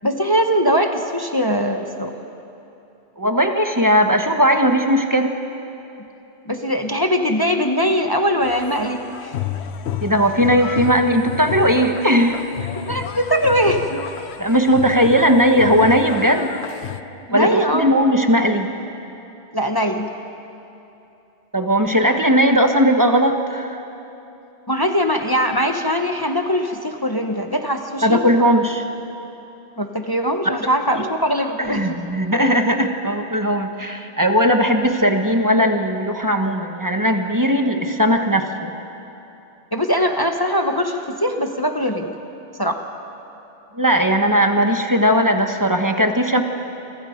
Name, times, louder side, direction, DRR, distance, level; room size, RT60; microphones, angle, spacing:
voice 1, 0.0-2.1 6.5-9.3 12.8-14.1 17.3-17.9 19.5-20.1 24.7-28.2 29.8-32.0 39.7-42.1 42.6-42.8, equal, 20° left, 4 dB, 1.1 m, -21 dB
voice 2, 3.2-5.3 10.0-12.5 14.4-16.5 17.3-18.7 21.5-23.8 28.0-28.8 30.4-30.6 30.9-31.1 31.6-38.7 43.7-46.4, equal, 20° right, 5 dB, 1.3 m, -18 dB
sound 1, 8.4-17.0, left 10 dB, 85° left, 1.0 m, -31 dB
29.0 x 24.5 x 5.2 m, 2.9 s
omnidirectional pair, 1.1 m